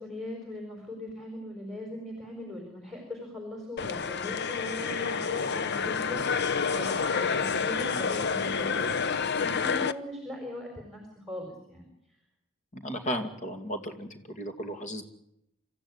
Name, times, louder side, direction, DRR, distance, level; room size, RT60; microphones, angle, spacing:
voice 1, 0.0-6.2 6.7-8.9 9.3-11.9, left 1 dB, ahead, 1 dB, 4.6 m, -39 dB
sound 1, 3.8-9.9, left 5 dB, 50° left, 0.8 m, -29 dB
voice 2, 12.7-15.0, equal, 35° left, 6 dB, 2.5 m, -35 dB
26.5 x 14.5 x 9.7 m, 0.79 s
head